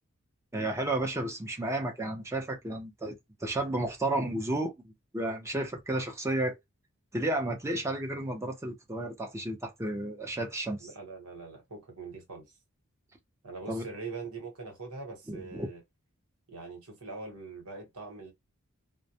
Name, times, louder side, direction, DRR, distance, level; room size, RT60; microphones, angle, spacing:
voice 1, 0.5-6.6 7.1-10.9 13.7-13.8 15.3-15.7, right 1 dB, 15° right, 0.6 m, -32 dB
voice 2, 10.8-12.5 13.4-15.8 16.5-18.3, right 4 dB, 85° right, 1.0 m, -42 dB
2.2 x 2.0 x 2.7 m
head